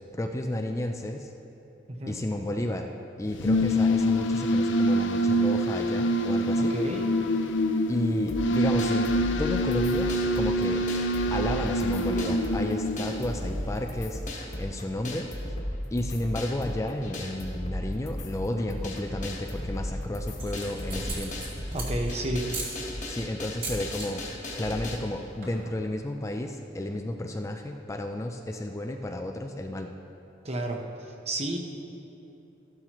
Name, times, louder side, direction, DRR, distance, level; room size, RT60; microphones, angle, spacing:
voice 1, 0.1-1.3 2.1-2.9 3.2-6.7 7.9-9.1 9.4-10.9 11.3-15.3 15.9-21.4 23.1-24.3 24.6-29.9, left 1 dB, 15° left, 4 dB, 0.4 m, -32 dB
sound 1, 3.2-13.7, equal, 75° left, 0.6 m, -26 dB
voice 2, 6.7-7.0 21.7-22.5 30.4-30.8 31.3-31.6, right 1 dB, 35° right, 2 dB, 1.0 m, -30 dB
sound 2, 8.3-25.0, left 1 dB, 40° left, 1.3 m, -36 dB
sound 3, 19.4-19.9 20.3-22.1 22.5-22.8 23.4-24.1 24.4-24.7 24.9-25.0 25.3-25.7, right 2 dB, 50° right, 2.6 m, -37 dB
13.5 x 11.5 x 3.0 m, 2.9 s
head